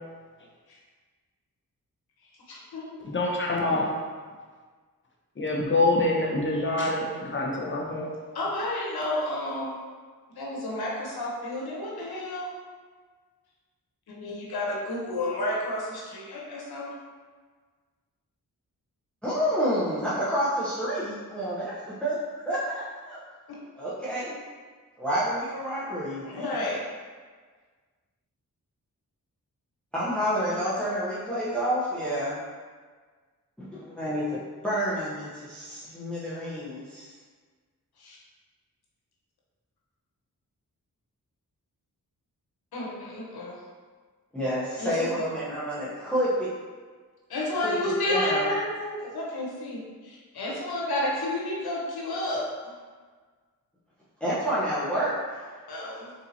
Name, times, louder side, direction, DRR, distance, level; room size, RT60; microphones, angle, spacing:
voice 1, 2.5-2.9 8.3-9.8 10.3-12.5 14.1-16.9 26.2-26.8 38.0-38.2 42.7-43.5 44.8-45.2 47.3-52.7 55.7-56.1, left 1 dB, 90° left, -4 dB, 0.9 m, -31 dB
voice 2, 3.1-3.9 5.4-7.0 7.3-8.1, left 2 dB, 30° left, -2 dB, 0.7 m, -25 dB
voice 3, 19.2-23.2 23.8-24.4 25.0-26.5 29.9-32.4 33.6-34.4 34.6-37.0 44.3-46.5 47.5-48.5 54.2-55.4, equal, 5° left, -9 dB, 0.8 m, -29 dB
3.7 x 2.7 x 2.7 m, 1.5 s
cardioid pair, 50°, 37 cm